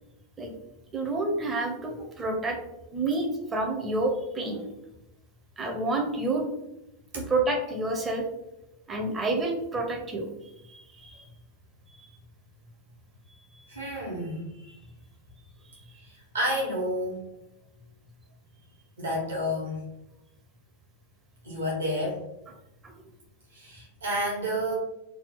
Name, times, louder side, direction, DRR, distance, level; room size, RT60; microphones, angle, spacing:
voice 1, 0.9-2.6 2.9-4.7 5.6-6.4 7.1-8.2 8.9-10.3 10.7-11.3, right 2 dB, 20° right, 1 dB, 0.6 m, -29 dB
voice 2, 13.7-14.8 16.1-17.2 19.0-19.8 21.4-22.2 23.5-24.7, equal, 70° right, -3 dB, 1.2 m, -30 dB
3.3 x 2.3 x 3.4 m, 0.90 s
figure-of-eight pair, 90°, 0 cm